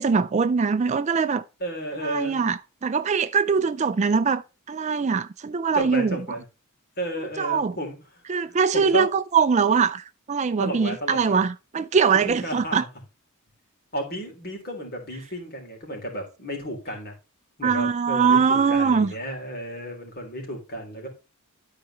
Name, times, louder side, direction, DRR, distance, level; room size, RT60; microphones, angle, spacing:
voice 1, 0.0-1.4 2.0-6.2 7.4-7.8 8.3-12.8 17.6-19.1, right 5 dB, 30° right, 0.4 m, -22 dB
voice 2, 1.6-2.4 5.7-6.4 7.0-8.0 8.7-9.1 10.6-11.4 12.1-12.9 13.9-17.1 17.6-21.1, right 1 dB, 45° left, 3.7 m, -32 dB
12.5 x 4.9 x 3.0 m
head